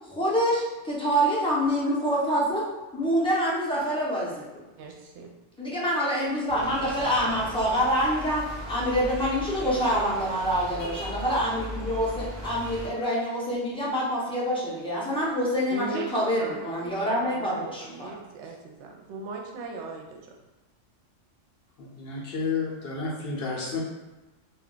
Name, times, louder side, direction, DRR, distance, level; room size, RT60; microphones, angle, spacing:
voice 1, 0.1-2.6 2.9-4.3 5.6-15.9 16.1-18.1, equal, 5° left, -8 dB, 0.4 m, -26 dB
voice 2, 4.8-5.3 15.7-16.1 16.4-20.3, right 3 dB, 70° right, 1 dB, 0.8 m, -39 dB
sound 1, 6.5-12.9, equal, 30° right, 0.8 m, -38 dB
voice 3, 21.8-23.8, left 4 dB, 60° left, -4 dB, 0.7 m, -31 dB
2.3 x 2.2 x 3.7 m, 1.1 s
omnidirectional pair, 1.3 m